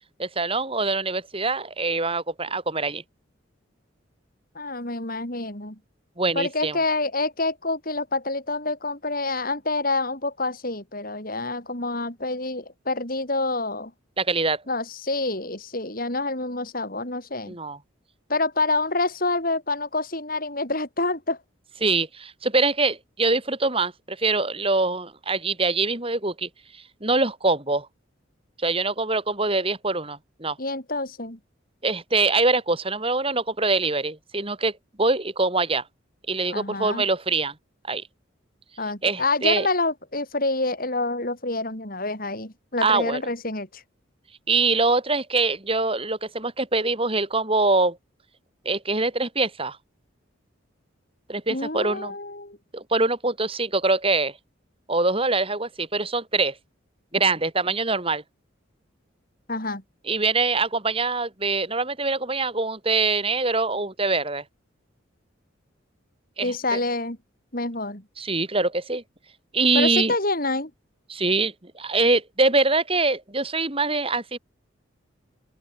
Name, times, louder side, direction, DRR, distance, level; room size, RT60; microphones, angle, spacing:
voice 1, 0.2-3.0 6.2-6.8 14.2-14.6 17.5-17.8 21.8-26.5 27.0-27.9 28.6-30.6 31.8-34.7 35.0-35.8 36.3-37.5 37.9-38.0 39.0-39.7 42.8-43.2 44.5-48.0 48.7-49.8 51.3-52.1 52.7-54.3 54.9-56.5 57.1-58.2 60.1-64.4 66.4-66.8 68.2-69.0 69.5-70.1 71.1-74.4, right 3 dB, 25° right, 4.2 m, -24 dB
voice 2, 4.5-5.8 6.3-13.9 14.7-17.6 18.3-21.4 30.6-31.4 36.5-37.1 38.8-43.8 51.5-52.6 59.5-59.8 66.4-67.2 67.5-68.0 69.7-70.7, left 2 dB, 45° left, 6.3 m, -27 dB
open air
head